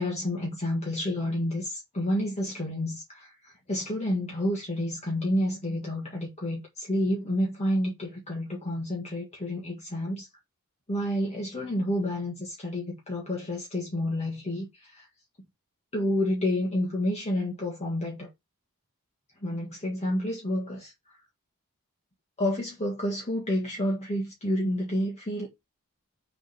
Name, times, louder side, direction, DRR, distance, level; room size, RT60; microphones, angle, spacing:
voice 1, 0.0-10.3 10.9-15.1 15.9-18.3 19.4-20.9 22.4-25.5, left 1 dB, 30° left, 1.8 m, -29 dB
6.9 x 3.6 x 5.6 m
head